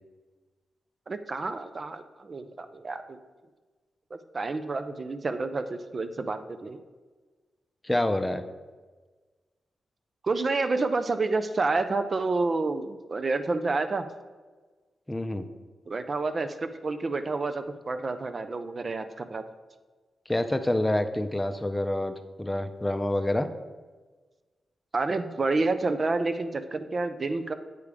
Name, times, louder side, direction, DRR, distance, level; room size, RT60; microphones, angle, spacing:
voice 1, 1.1-3.2 4.3-6.8 10.2-14.1 15.9-19.4 24.9-27.5, right 3 dB, 50° right, 9 dB, 0.5 m, -29 dB
voice 2, 7.8-8.4 15.1-15.5 20.3-23.5, left 1 dB, 15° left, 8 dB, 0.5 m, -27 dB
8.3 x 3.4 x 5.0 m, 1.3 s
cardioid pair, 50°, 0 cm